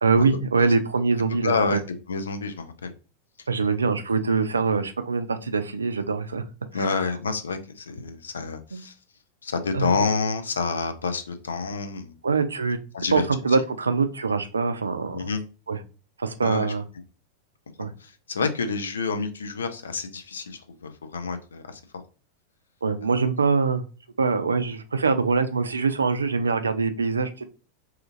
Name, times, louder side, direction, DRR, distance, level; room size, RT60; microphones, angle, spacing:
voice 1, 0.0-1.8 3.5-6.4 6.7-6.9 8.7-8.8 9.7-9.9 12.2-12.8 13.1-15.3 15.7-15.8 16.2-16.8 17.8-17.9 22.8-23.8 24.2-27.4, right 4 dB, 75° right, 10 dB, 0.3 m, -24 dB
voice 2, 1.4-1.8 2.1-2.9 6.7-8.9 9.4-12.2 12.9-13.2 15.1-15.4 16.4-16.7 18.0-21.8, left 4 dB, 70° left, 8 dB, 0.4 m, -28 dB
2.8 x 2.4 x 2.5 m, 0.34 s
figure-of-eight pair, 90°, 0 cm